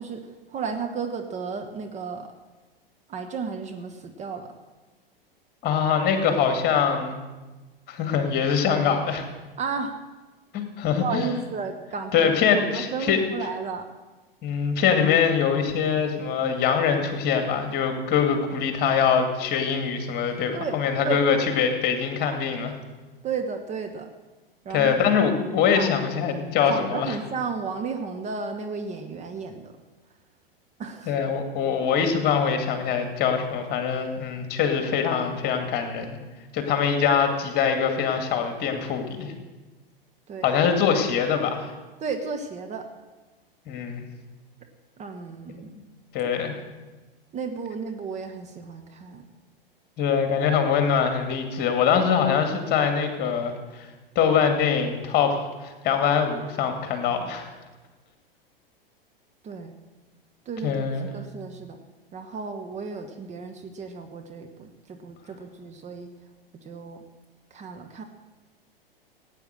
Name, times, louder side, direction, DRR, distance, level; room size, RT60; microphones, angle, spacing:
voice 1, 0.0-2.3 3.1-4.5 9.6-9.9 11.0-13.8 20.5-21.2 23.2-24.1 24.6-25.0 25.7-25.9 26.7-29.7 30.8-31.1 40.3-40.5 42.0-42.9 45.0-45.7 47.3-49.2 59.4-59.7 60.4-61.8 62.1-66.1 66.5-67.0 67.5-68.0, right 5 dB, 25° right, 5 dB, 1.3 m, -33 dB
voice 2, 5.6-7.2 7.9-9.2 10.5-11.3 12.1-13.2 14.4-22.8 24.7-27.1 31.1-36.2 36.5-39.3 40.4-41.7 43.7-44.0 46.1-46.5 50.0-53.9 54.2-57.5 60.6-61.1, left 7 dB, 35° left, 6 dB, 2.3 m, -23 dB
17.0 x 9.2 x 6.6 m, 1.2 s
figure-of-eight pair, 95°, 29 cm